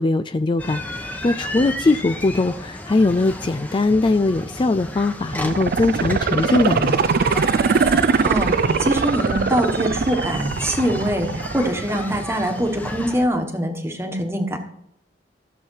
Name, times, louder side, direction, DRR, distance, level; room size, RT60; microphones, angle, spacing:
voice 1, 0.0-7.0, left 2 dB, 25° left, 11 dB, 0.3 m, -20 dB
sound 1, 0.6-13.3, left 1 dB, 10° left, 1.1 m, -33 dB
sound 2, 5.3-12.3 12.7-12.8, right 5 dB, 55° right, 0.4 m, -22 dB
voice 2, 8.2-14.6, equal, 15° right, 5 dB, 1.4 m, -23 dB
14.5 x 7.4 x 4.7 m, 0.77 s
head